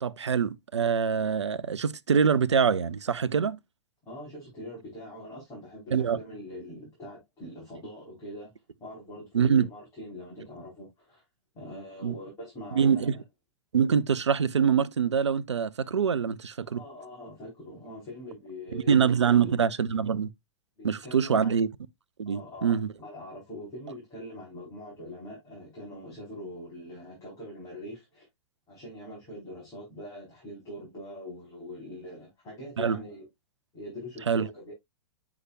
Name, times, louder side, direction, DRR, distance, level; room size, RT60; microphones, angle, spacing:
voice 1, 0.0-3.6 5.9-6.2 9.3-9.7 12.0-12.2 12.7-13.2 13.7-16.8 18.7-20.3 20.8-21.7 22.2-22.9 32.8-33.0 34.3-34.5, right 7 dB, 75° right, 0.6 m, -24 dB
voice 2, 4.1-8.5 8.8-11.2 11.5-13.1 16.7-19.5 20.8-21.6 22.2-28.3 28.7-33.3 33.7-34.7, left 1 dB, 20° left, 4.5 m, -43 dB
8.1 x 5.9 x 2.5 m
figure-of-eight pair, 100°, 15 cm